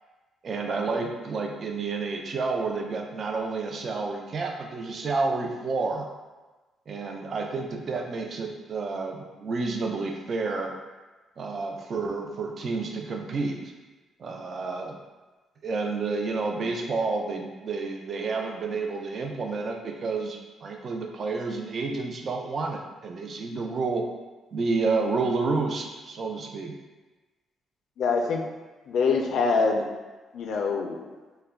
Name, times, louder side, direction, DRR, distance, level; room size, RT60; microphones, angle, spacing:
voice 1, 0.4-6.1 6.9-10.7 11.4-13.6 14.2-15.0 15.6-24.0 24.5-26.7, right 3 dB, 50° right, 2 dB, 0.3 m, -30 dB
voice 2, 28.0-28.5 28.9-29.9 30.3-31.1, left 4 dB, 70° left, 2 dB, 0.3 m, -24 dB
2.2 x 2.1 x 3.4 m, 1.2 s
cardioid pair, 90°, 0 cm